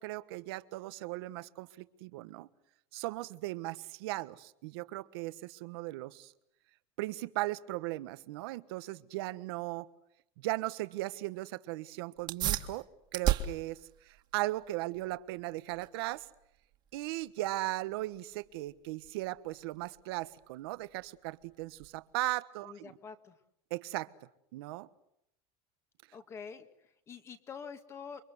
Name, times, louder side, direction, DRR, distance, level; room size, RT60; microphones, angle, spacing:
voice 1, 0.0-2.5 2.9-6.3 7.0-9.9 10.4-12.9 13.1-16.3 16.9-22.9 23.7-24.1 24.5-24.9, right 18 dB, 80° right, 1.4 m, -37 dB
sound 1, 12.2-22.2, right 11 dB, 35° right, 2.1 m, -39 dB
voice 2, 22.6-23.4 26.1-28.2, left 6 dB, 20° left, 1.9 m, -46 dB
29.0 x 24.5 x 8.0 m
cardioid pair, 175°, 13 cm